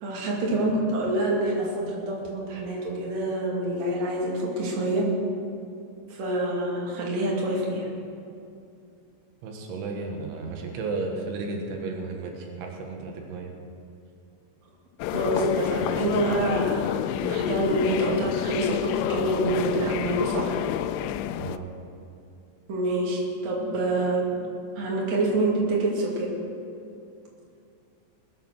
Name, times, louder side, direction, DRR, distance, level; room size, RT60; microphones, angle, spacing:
voice 1, 0.0-5.1 6.1-7.9 15.1-20.5 22.7-24.2 24.8-26.4, right 1 dB, 45° right, -3 dB, 3.1 m, -26 dB
voice 2, 9.4-13.6 21.4-21.7, right 3 dB, 85° right, 1 dB, 3.8 m, -34 dB
sound 1, 15.0-21.6, left 11 dB, 90° left, 2.3 m, -28 dB
20.5 x 8.4 x 6.2 m, 2.5 s
omnidirectional pair, 5.3 m